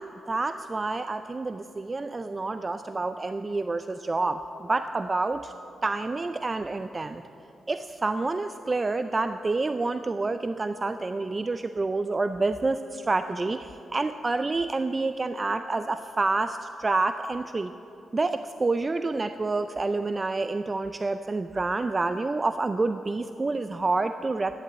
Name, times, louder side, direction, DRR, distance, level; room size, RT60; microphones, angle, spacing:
voice 1, 0.0-5.5 5.8-7.2 7.7-17.7 18.1-24.6, right 3 dB, 30° right, 10 dB, 0.3 m, -28 dB
11.0 x 7.6 x 8.1 m, 3.0 s
cardioid pair, 70°, 0 cm